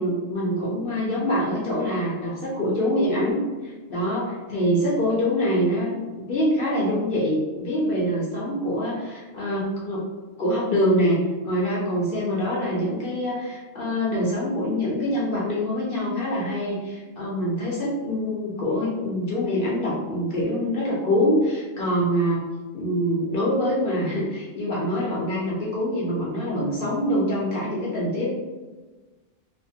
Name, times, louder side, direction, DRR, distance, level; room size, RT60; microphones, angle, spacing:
voice 1, 0.0-10.0 10.4-11.2 11.4-22.4 22.7-28.3, equal, 55° left, -6 dB, 0.7 m, -25 dB
2.5 x 2.4 x 2.7 m, 1.3 s
omnidirectional pair, 1.4 m